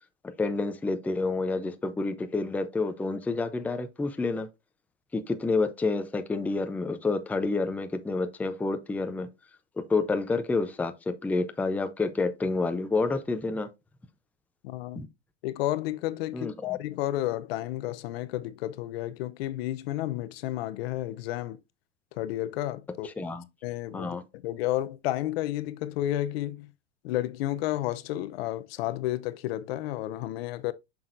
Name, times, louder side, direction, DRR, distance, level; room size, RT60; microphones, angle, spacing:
voice 1, 0.2-4.5 5.1-9.3 9.8-13.7 15.0-15.1 16.3-16.5 23.2-23.4 23.9-24.2, left 3 dB, 5° left, 0.5 m, -29 dB
voice 2, 14.6-15.0 15.4-21.6 22.1-23.1 23.6-26.7 27.0-30.7, left 14 dB, 60° left, 0.7 m, -31 dB
7.2 x 6.2 x 2.5 m
hypercardioid pair, 120°, 34 cm